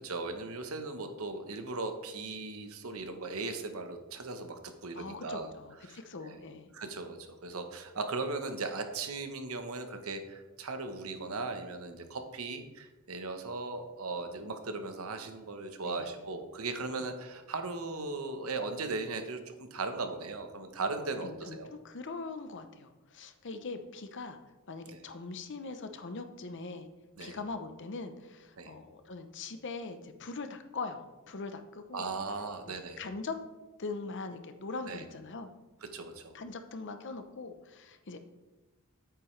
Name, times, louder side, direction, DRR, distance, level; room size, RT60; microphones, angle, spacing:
voice 1, 0.0-5.5 5.8-6.4 6.7-21.7 24.9-25.0 27.2-27.4 28.6-28.7 31.9-33.0 34.9-35.0 35.9-36.4, right 3 dB, 75° right, 6 dB, 1.0 m, -38 dB
voice 2, 4.9-6.7 15.8-16.1 17.0-17.1 21.2-24.4 24.7-26.9 27.2-32.1 32.7-33.4 33.8-35.5 36.3-38.2, left 3 dB, 60° left, 8 dB, 0.8 m, -41 dB
9.0 x 8.5 x 3.3 m, 1.1 s
head